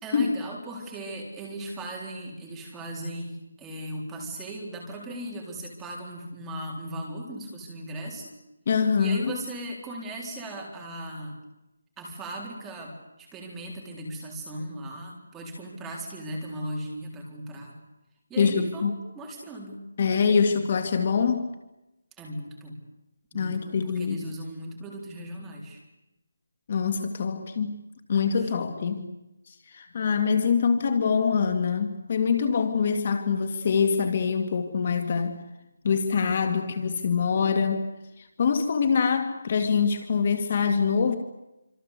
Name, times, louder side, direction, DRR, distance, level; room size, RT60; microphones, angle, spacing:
voice 1, 0.0-8.3 9.0-11.4 12.0-17.8 18.3-19.8 20.2-20.6 22.2-22.8 23.3-25.8 28.3-28.8, right 1 dB, 5° right, -1 dB, 3.9 m, -38 dB
voice 2, 8.7-9.4 18.4-18.9 20.0-21.5 23.3-24.2 26.7-27.8 28.1-29.1 29.5-35.4 35.8-37.8 38.2-41.2, left 6 dB, 30° left, 7 dB, 2.0 m, -24 dB
26.0 x 26.0 x 8.3 m, 0.96 s
hypercardioid pair, 175°, 0 cm